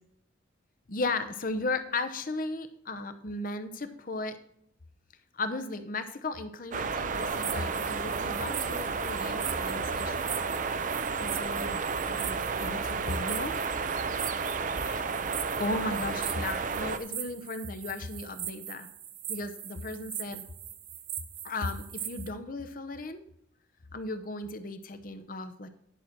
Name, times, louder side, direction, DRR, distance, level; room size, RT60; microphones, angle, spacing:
voice 1, 0.9-4.4 5.3-10.4 11.2-13.5 14.8-15.0 15.6-18.9 19.3-20.4 21.4-23.2 23.9-25.7, left 2 dB, 45° left, 10 dB, 0.8 m, -36 dB
sound 1, 6.7-17.0, right 5 dB, 40° right, 0.5 m, -32 dB
sound 2, 7.1-22.3, right 10 dB, 60° right, 0.9 m, -41 dB
11.0 x 6.2 x 4.4 m, 0.73 s
head